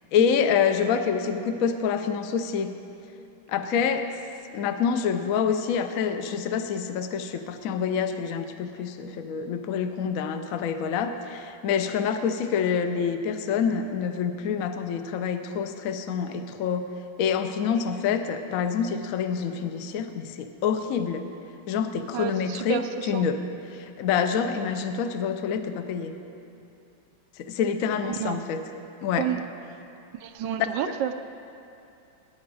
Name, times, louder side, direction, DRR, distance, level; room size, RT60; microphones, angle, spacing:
voice 1, 0.1-2.7 3.5-4.1 4.5-16.9 17.2-21.2 21.7-22.8 23.1-23.4 23.7-26.1 27.4-28.6 29.0-29.3, left 7 dB, 65° left, 8 dB, 0.8 m, -27 dB
voice 2, 22.1-23.2 28.1-28.4 29.1-29.4 30.2-31.1, right 10 dB, 75° right, 9 dB, 1.1 m, -31 dB
17.0 x 9.4 x 4.8 m, 2.8 s
omnidirectional pair, 2.1 m